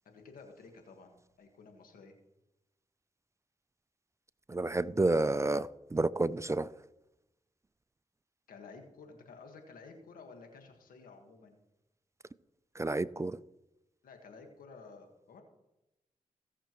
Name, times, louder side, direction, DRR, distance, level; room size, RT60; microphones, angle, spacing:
voice 1, 0.0-1.1 1.4-2.1 8.5-11.6 14.0-15.4, left 4 dB, 90° left, 1.6 m, -52 dB
voice 2, 4.5-6.8 12.7-13.4, right 2 dB, 20° right, 0.4 m, -30 dB
17.0 x 6.8 x 3.1 m
supercardioid pair, 45°, 14 cm